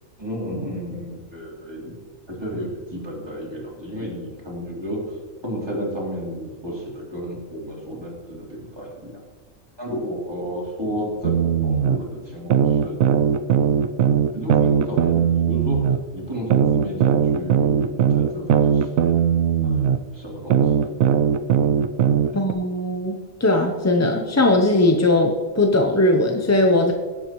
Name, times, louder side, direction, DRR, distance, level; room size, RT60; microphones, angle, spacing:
voice 1, 0.2-2.0 2.3-5.2 5.4-9.2 9.8-11.3 11.6-13.3 14.3-15.8 16.1-18.9 19.6-20.9 22.2-22.3, equal, 20° right, -5 dB, 3.4 m, -32 dB
sound 1, 11.2-12.0 12.5-16.0 16.5-20.0 20.5-22.5, right 8 dB, 85° right, 1.0 m, -19 dB
voice 2, 22.3-26.9, left 2 dB, 20° left, 3 dB, 0.5 m, -19 dB
18.5 x 8.8 x 3.1 m, 1.4 s
omnidirectional pair, 1.4 m